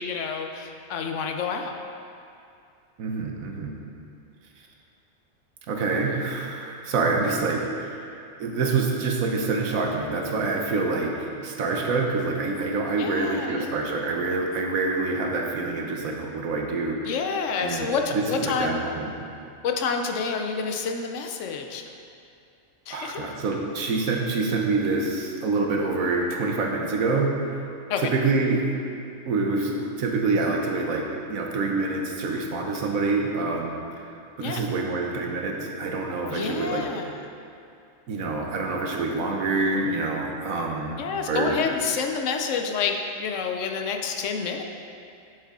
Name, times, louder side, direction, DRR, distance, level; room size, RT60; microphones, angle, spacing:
voice 1, 0.0-1.8 12.9-13.8 17.0-18.8 19.6-21.9 22.9-23.2 27.9-28.0 34.4-34.6 36.3-37.2 41.0-44.6, left 5 dB, 70° left, 4 dB, 0.9 m, -28 dB
voice 2, 3.0-3.7 5.7-17.1 17.6-19.1 22.9-27.7 28.0-28.6 29.3-34.1 34.4-36.8 38.1-41.0 41.3-41.6, right 3 dB, 80° right, 1 dB, 1.3 m, -26 dB
7.6 x 6.7 x 3.7 m, 2.5 s
omnidirectional pair, 1.4 m